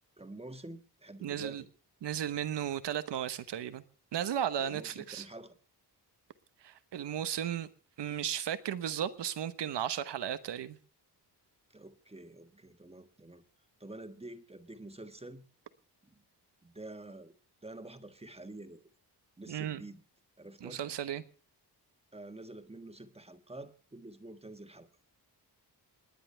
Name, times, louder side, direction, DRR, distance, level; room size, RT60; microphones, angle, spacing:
voice 1, 0.2-1.7 4.6-5.6 11.7-13.4 13.8-15.4 16.0-16.2 16.6-17.3 17.6-18.8 19.4-20.0 20.4-20.8 22.1-24.9, right 2 dB, 15° right, 1.5 m, -48 dB
voice 2, 1.2-1.6 2.0-3.8 4.1-5.2 6.6-7.7 8.0-10.8 19.5-19.8 20.6-21.2, right 10 dB, 85° right, 1.2 m, -35 dB
28.5 x 10.5 x 3.4 m
wide cardioid pair, 105°, 41 cm